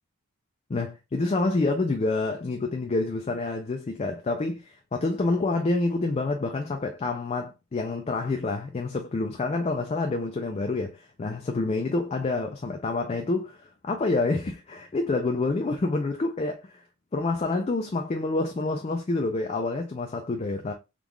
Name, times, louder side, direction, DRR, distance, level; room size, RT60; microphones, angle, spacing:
voice 1, 0.7-16.8 17.1-20.7, left 3 dB, 30° left, 0.3 m, -28 dB
3.6 x 2.4 x 3.0 m
head